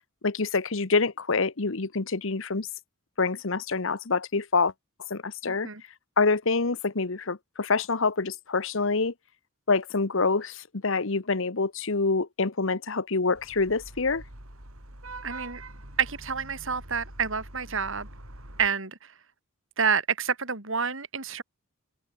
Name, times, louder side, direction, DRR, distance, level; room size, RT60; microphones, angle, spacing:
voice 1, 0.2-2.7 3.2-4.7 5.1-5.7 6.2-9.1 9.7-14.2, left 4 dB, 65° left, 1.1 m, -26 dB
voice 2, 5.4-5.8 15.2-15.6 16.0-18.1 18.6-19.0 19.8-21.4, right 6 dB, 65° right, 3.8 m, -28 dB
Vehicle horn car horn honking / Traffic noise roadway noise, 13.3-18.7, right 2 dB, 80° right, 7.8 m, -44 dB
head